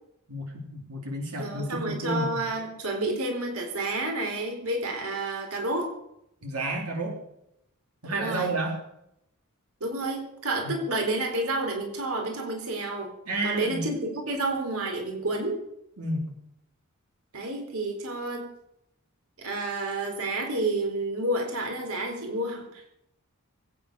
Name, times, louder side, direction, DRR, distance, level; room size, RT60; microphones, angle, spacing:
voice 1, 0.3-2.4 6.4-7.2 8.0-8.8 10.6-10.7 13.3-13.9 16.0-16.3, right 1 dB, 90° right, 0 dB, 3.8 m, -31 dB
voice 2, 1.4-5.9 8.1-8.5 9.8-13.1 13.4-15.6 17.3-18.5 19.4-23.0, right 2 dB, 75° right, 3 dB, 3.9 m, -30 dB
21.5 x 9.5 x 6.7 m, 0.80 s
head